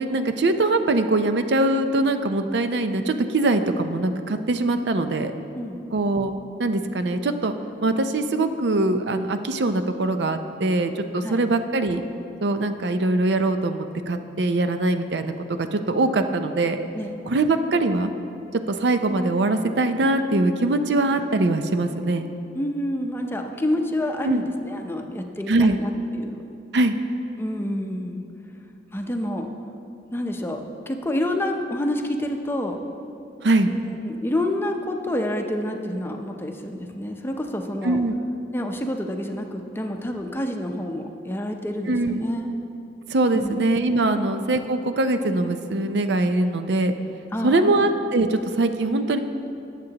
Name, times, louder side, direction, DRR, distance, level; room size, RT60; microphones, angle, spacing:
voice 1, 0.0-5.3 5.9-6.3 6.6-7.5 7.8-12.0 12.4-15.3 15.7-16.8 17.3-18.1 18.7-22.3 24.2-24.4 25.5-25.8 26.7-26.9 33.4-33.7 37.8-38.2 41.9-42.2 43.1-46.9 47.4-49.2, right 2 dB, 70° right, 8 dB, 0.5 m, -22 dB
voice 2, 22.5-26.4 27.4-28.2 28.9-29.5 30.1-32.8 33.7-38.0 38.5-42.5 43.3-43.6 47.3-47.8, left 1 dB, 15° left, 4 dB, 0.6 m, -28 dB
19.5 x 7.5 x 2.9 m, 2.7 s
head